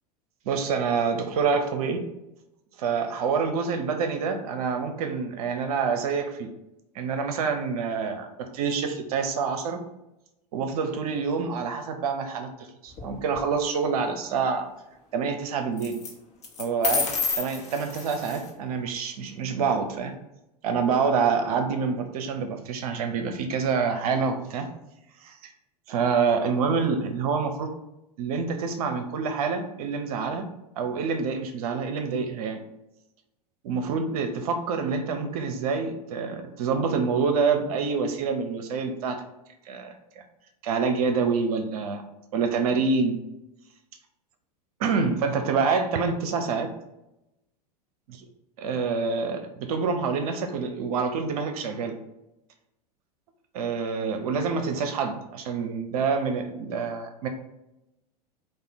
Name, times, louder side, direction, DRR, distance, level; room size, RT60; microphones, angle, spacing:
voice 1, 0.5-2.0 2.8-6.5 6.9-8.3 8.5-9.8 10.5-12.5 12.8-14.7 15.1-16.0 16.6-17.1 17.4-20.1 20.6-24.7 25.2-25.4 25.9-27.7 28.2-30.4 30.8-32.6 33.6-39.2 39.7-40.2 40.6-42.0 42.3-43.2 44.8-46.7 48.6-51.9 53.5-57.3, right 5 dB, 65° right, 6 dB, 0.6 m, -27 dB
sound 1, 12.9-13.4 15.8-16.1 16.4-18.5, left 5 dB, 35° left, 1.2 m, -30 dB
4.8 x 2.5 x 3.8 m, 0.90 s
hypercardioid pair, 90°, 21 cm